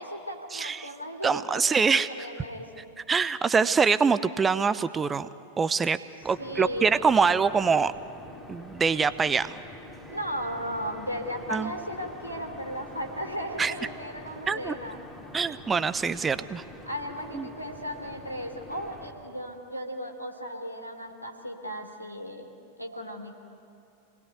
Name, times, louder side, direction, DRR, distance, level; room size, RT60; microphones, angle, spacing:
voice 1, 0.0-2.9 6.4-7.1 10.1-15.0 16.8-23.3, equal, 90° left, 4 dB, 3.1 m, -36 dB
voice 2, 0.5-0.9 1.2-2.1 3.1-5.3 5.6-6.0 6.2-7.9 8.5-9.6 11.5-11.7 13.6-13.7 14.5-14.7 15.3-16.6 17.3-17.5, right 5 dB, 15° right, 14 dB, 0.8 m, -24 dB
sound 1, 6.2-19.1, left 1 dB, 10° left, 4.3 m, -46 dB
28.0 x 20.0 x 9.4 m, 2.6 s
figure-of-eight pair, 90°, 0 cm